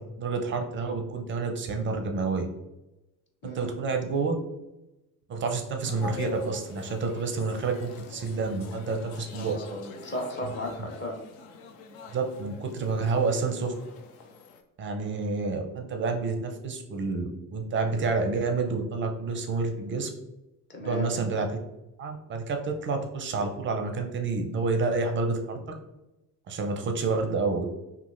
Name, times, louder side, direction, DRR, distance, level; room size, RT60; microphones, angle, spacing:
voice 1, 0.0-2.5 3.4-4.4 5.3-9.6 12.1-13.7 14.8-20.1 20.8-21.5 22.0-25.6 26.5-27.7, right 4 dB, 25° right, 4 dB, 0.5 m, -29 dB
voice 2, 3.4-3.7 9.3-11.2 20.7-21.1, left 1 dB, 25° left, 0 dB, 0.7 m, -35 dB
sound 1, 5.8-14.6, left 4 dB, 70° left, 0.5 m, -44 dB
2.9 x 2.5 x 2.4 m, 0.95 s
figure-of-eight pair, 55°, 46 cm